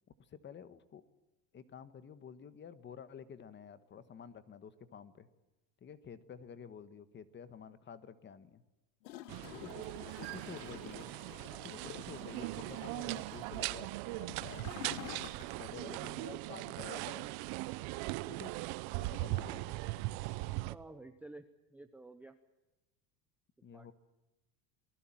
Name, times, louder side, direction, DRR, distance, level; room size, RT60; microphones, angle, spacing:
voice 1, 0.2-1.0 1.5-5.3 5.8-8.6 9.5-9.7 10.2-11.1 11.6-15.1 15.5-17.3 18.2-18.5 19.0-19.7 23.6-23.9, left 7 dB, 20° left, 14 dB, 1.4 m, -50 dB
Gurgling / Toilet flush, 9.0-15.9 16.2-16.3, left 14 dB, 85° left, 1.5 m, -50 dB
sound 1, 9.3-20.7, right 20 dB, 50° right, 0.9 m, -40 dB
voice 2, 20.7-22.4 23.7-23.9, right 2 dB, 5° right, 8 dB, 0.7 m, -52 dB
27.0 x 19.0 x 7.5 m, 1.0 s
supercardioid pair, 150°, 50 cm